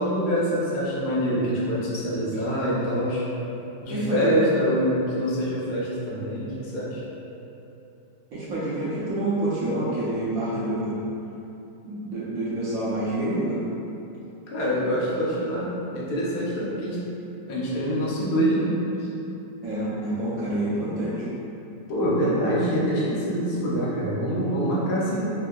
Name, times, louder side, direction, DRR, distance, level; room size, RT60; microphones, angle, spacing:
voice 1, 0.0-3.3 3.8-7.0 14.5-17.0 17.5-18.7 19.0-19.1 21.9-25.3, equal, 70° left, -7 dB, 1.1 m, -25 dB
voice 2, 3.9-4.5 8.3-11.0 11.9-13.6 19.6-21.3, right 1 dB, 65° right, -9 dB, 0.9 m, -27 dB
3.6 x 2.5 x 2.2 m, 2.9 s
omnidirectional pair, 1.8 m